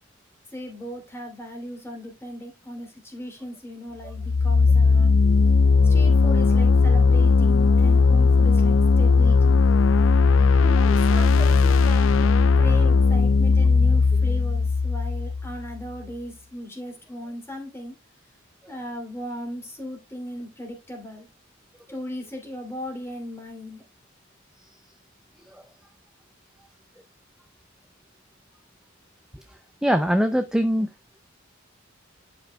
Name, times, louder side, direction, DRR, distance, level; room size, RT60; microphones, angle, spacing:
voice 1, 0.5-5.1 5.8-9.6 10.6-17.9 18.7-21.3 21.9-23.8, equal, 15° left, 2.6 m, -37 dB
sound 1, 4.1-15.9, left 4 dB, 75° left, 0.4 m, -18 dB
voice 2, 29.8-30.9, equal, 5° right, 0.4 m, -22 dB
11.5 x 5.3 x 2.2 m
head